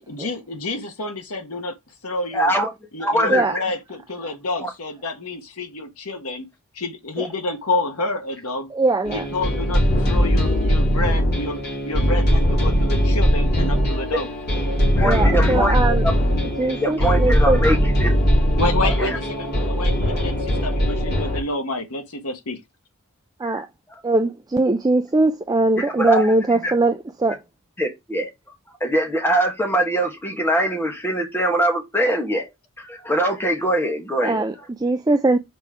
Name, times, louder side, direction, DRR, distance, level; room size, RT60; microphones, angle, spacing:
voice 1, 0.0-1.7 2.0-2.5 2.9-6.4 6.7-8.7 9.0-14.3 18.5-22.6, left 2 dB, 90° left, 1.4 m, -29 dB
voice 2, 2.3-2.7 3.0-3.4 4.6-4.7 13.6-13.7 15.0-15.7 16.0-16.1 16.6-18.1 19.0-19.2 23.4-23.6 25.8-26.3 26.6-26.7 27.8-28.3 28.8-32.5 32.8-34.4, right 1 dB, 10° left, 1.6 m, -22 dB
voice 3, 8.7-9.2 15.0-16.1 16.6-17.7 23.4-23.7 24.0-27.4 34.2-35.4, right 2 dB, 20° right, 0.5 m, -21 dB
sound 1, 9.1-21.4, equal, 50° left, 3.5 m, -20 dB
6.0 x 4.5 x 3.7 m
head